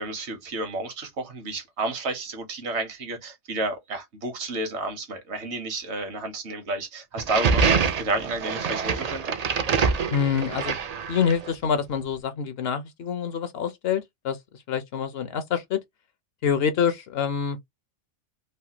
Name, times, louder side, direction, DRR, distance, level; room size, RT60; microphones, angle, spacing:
voice 1, 0.0-9.4, right 2 dB, 70° right, 1.2 m, -31 dB
sound 1, 7.2-11.5, right 5 dB, 55° right, 0.4 m, -25 dB
voice 2, 10.1-10.8 11.1-14.4 14.7-15.8 16.4-17.6, left 7 dB, 65° left, 0.7 m, -26 dB
3.2 x 2.1 x 2.7 m
omnidirectional pair, 1.2 m